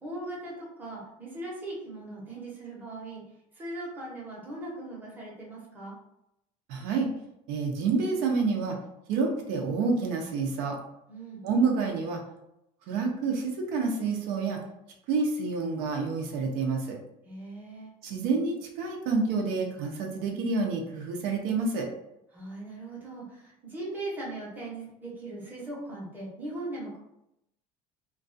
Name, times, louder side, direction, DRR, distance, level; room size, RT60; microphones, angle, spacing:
voice 1, 0.0-3.2 3.5-6.0 11.1-11.4 17.2-17.9 22.3-27.0, right 2 dB, 10° right, -5 dB, 0.7 m, -39 dB
voice 2, 6.7-7.1 7.5-8.8 9.1-10.8 11.4-12.2 12.9-14.6 15.1-17.0 18.0-21.9, right 4 dB, 75° right, 1 dB, 0.5 m, -28 dB
2.3 x 2.2 x 2.5 m, 0.82 s
cardioid pair, 160°, 15 cm